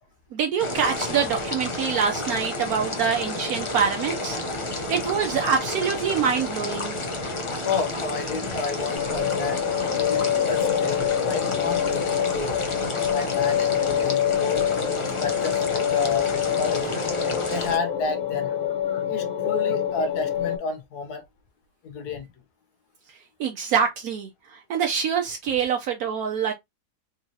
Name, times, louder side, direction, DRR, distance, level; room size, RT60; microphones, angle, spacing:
voice 1, 0.3-4.4 4.9-6.9 23.4-26.5, right 7 dB, 75° right, 1.1 m, -25 dB
sound 1, 0.6-17.8, left 2 dB, 35° left, 0.5 m, -31 dB
voice 2, 7.6-9.6 10.0-12.5 13.1-14.6 15.2-17.0 17.5-18.5 18.9-21.2 21.8-22.3, left 4 dB, 80° left, 1.4 m, -31 dB
sound 2, 8.9-20.6, left 9 dB, 60° left, 1.3 m, -26 dB
3.7 x 3.1 x 2.7 m
omnidirectional pair, 1.6 m